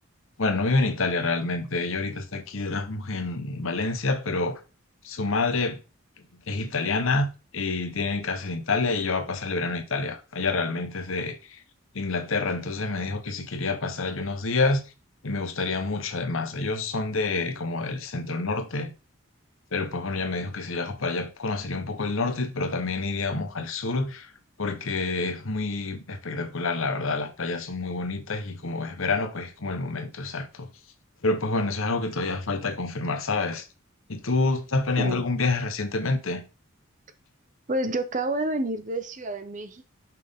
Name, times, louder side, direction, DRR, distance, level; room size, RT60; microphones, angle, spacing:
voice 1, 0.4-4.6 5.0-5.8 6.2-11.6 11.9-14.8 15.2-18.9 19.7-24.3 24.6-30.7 31.2-33.7 34.1-36.4, left 3 dB, 65° left, 1.0 m, -28 dB
voice 2, 37.7-39.9, right 1 dB, 35° right, 0.7 m, -29 dB
5.9 x 5.8 x 3.6 m
head